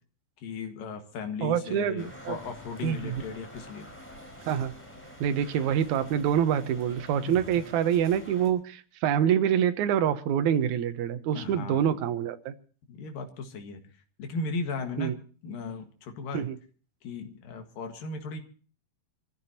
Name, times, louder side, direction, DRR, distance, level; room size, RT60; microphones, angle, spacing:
voice 1, 0.4-3.9 7.3-7.4 11.3-11.9 12.9-13.9 14.2-16.5 17.0-18.4, left 4 dB, 80° left, 6 dB, 3.5 m, -36 dB
voice 2, 1.4-2.4 2.8-3.2 4.5-4.7 5.2-12.5 15.0-15.2 16.3-16.6, right 9 dB, 70° right, 9 dB, 2.3 m, -26 dB
sound 1, 2.0-8.5, equal, 5° left, 4.4 m, -47 dB
27.0 x 14.5 x 2.8 m, 0.41 s
omnidirectional pair, 3.9 m